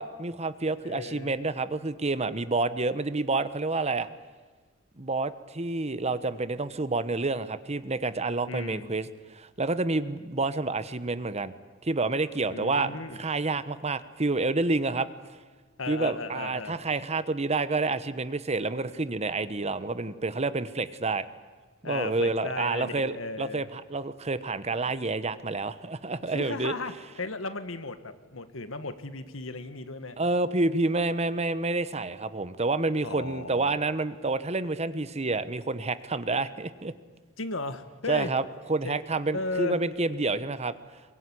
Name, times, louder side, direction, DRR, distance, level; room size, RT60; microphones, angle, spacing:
voice 1, 0.0-4.1 5.0-11.5 11.8-12.9 13.2-15.1 15.9-21.3 21.8-26.7 30.2-36.9 38.1-38.4 38.7-40.7, right 3 dB, 35° right, 14 dB, 1.1 m, -29 dB
voice 2, 0.8-1.3 8.5-8.9 12.5-13.2 15.8-16.8 21.8-23.7 26.3-26.9 27.2-30.2 33.0-33.8 37.4-38.3 38.8-39.0 39.3-39.8, left 3 dB, 85° left, 10 dB, 1.7 m, -35 dB
23.0 x 22.5 x 9.9 m, 1.4 s
head